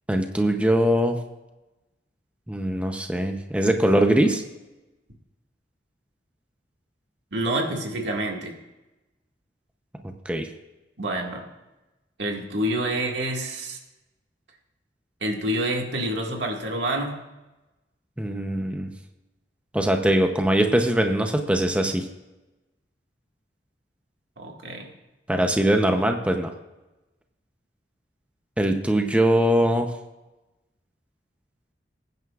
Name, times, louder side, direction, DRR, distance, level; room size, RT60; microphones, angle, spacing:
voice 1, 0.1-1.2 2.5-4.4 10.3-10.5 18.2-18.9 19.7-22.1 25.3-26.5 28.6-29.9, right 1 dB, 5° right, 4 dB, 0.7 m, -22 dB
voice 2, 7.3-8.5 11.0-11.5 12.2-13.8 15.2-17.2 24.4-24.9, right 1 dB, 85° right, 1 dB, 2.0 m, -27 dB
21.5 x 9.4 x 2.4 m, 1.0 s
head